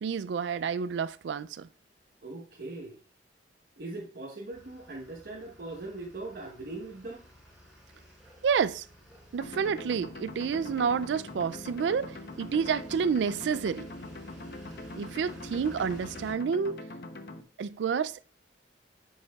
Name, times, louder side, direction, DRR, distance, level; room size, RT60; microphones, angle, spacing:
voice 1, 0.0-1.7 8.4-8.9 9.3-13.9 15.0-16.8 17.6-18.2, right 6 dB, 85° right, 0.3 m, -29 dB
voice 2, 2.2-3.0 3.8-7.2, right 2 dB, 60° right, 1.1 m, -40 dB
sound 1, 4.5-16.3, equal, ahead, 3.5 m, -53 dB
sound 2, 9.4-17.4, left 2 dB, 60° left, 0.8 m, -43 dB
8.2 x 7.0 x 2.3 m
head